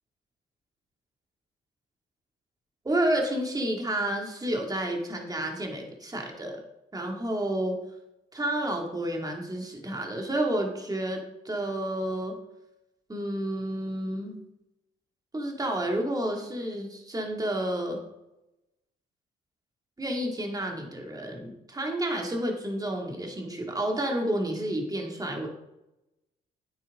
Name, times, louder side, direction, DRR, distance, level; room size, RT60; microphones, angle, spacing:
voice 1, 2.8-6.6 6.9-7.8 8.3-12.4 13.1-14.4 15.3-18.0 20.0-25.5, right 1 dB, 20° right, 1 dB, 2.4 m, -30 dB
9.2 x 9.0 x 3.8 m, 0.90 s
cardioid pair, 90°, 20 cm